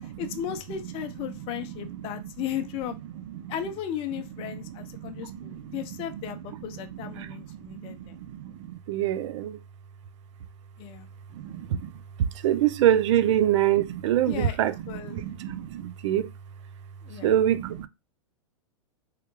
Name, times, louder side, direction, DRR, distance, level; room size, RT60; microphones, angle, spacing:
voice 1, 0.0-3.0 3.5-8.2 10.8-11.1 14.3-15.2 17.0-17.3, left 10 dB, 35° left, 0.5 m, -36 dB
voice 2, 1.2-2.3 3.1-3.5 4.5-6.2 6.7-9.6 11.3-11.9 12.2-16.3 17.2-17.9, right 11 dB, 60° right, 0.4 m, -27 dB
3.4 x 2.3 x 2.9 m
hypercardioid pair, 125°, 17 cm